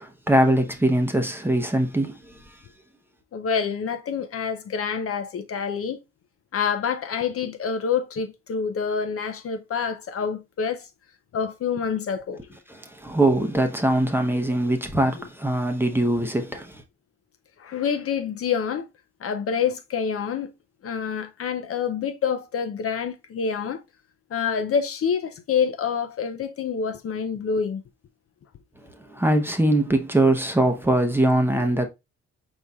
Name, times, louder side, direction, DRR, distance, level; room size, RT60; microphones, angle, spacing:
voice 1, 0.0-2.2 12.7-16.8 29.1-31.9, right 1 dB, 5° right, 0.8 m, -22 dB
voice 2, 3.3-6.0 6.5-10.9 11.3-12.4 17.6-18.9 19.2-20.5 20.8-23.8 24.3-27.8, left 6 dB, 50° left, 0.6 m, -27 dB
4.7 x 4.1 x 2.3 m
cardioid pair, 90°, 30 cm